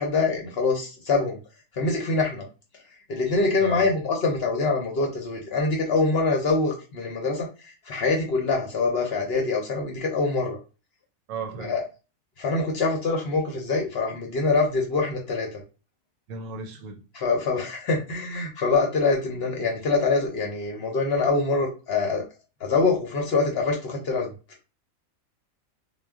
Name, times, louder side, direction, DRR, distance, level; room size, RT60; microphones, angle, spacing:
voice 1, 0.0-1.4 1.7-2.5 3.1-10.6 11.6-11.8 12.4-15.6 17.1-22.2 22.6-24.3, left 3 dB, 60° left, 0.7 m, -24 dB
voice 2, 3.6-3.9 11.3-11.8 16.3-17.0, right 5 dB, 85° right, 1.1 m, -35 dB
2.2 x 2.1 x 3.4 m
omnidirectional pair, 1.4 m